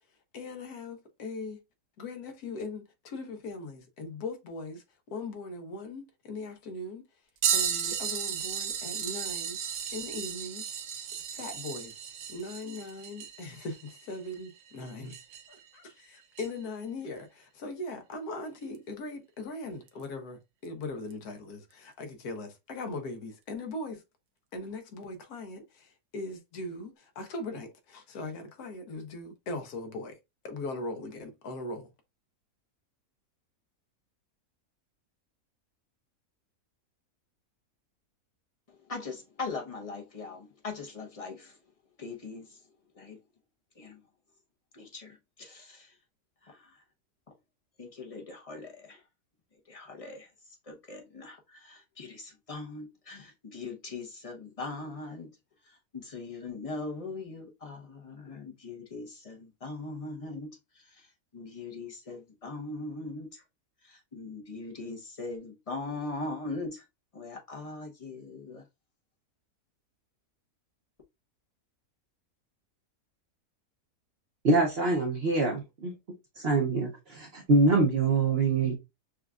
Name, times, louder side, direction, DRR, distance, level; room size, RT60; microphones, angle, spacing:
voice 1, 0.3-1.6 2.0-7.1 7.5-10.8 11.3-12.0 12.3-15.2 15.5-24.0 24.5-30.2 30.4-31.9, left 2 dB, 75° left, 1.3 m, -40 dB
sound 1, 7.4-15.6 16.4-16.5 18.7-18.8 19.9-20.0 21.1-21.2, right 8 dB, 80° right, 1.2 m, -34 dB
voice 2, 38.9-41.6 42.0-42.6 43.0-43.2 43.8-44.0 44.7-45.9 46.4-46.8 47.8-49.0 49.7-50.3 50.7-55.3 55.7-60.5 60.8-61.1 61.3-63.4 63.8-66.8 67.1-68.6, left 3 dB, 30° left, 0.6 m, -40 dB
voice 3, 74.4-75.9 76.4-78.7, right 3 dB, 50° right, 0.8 m, -25 dB
6.2 x 2.4 x 2.3 m
omnidirectional pair, 1.7 m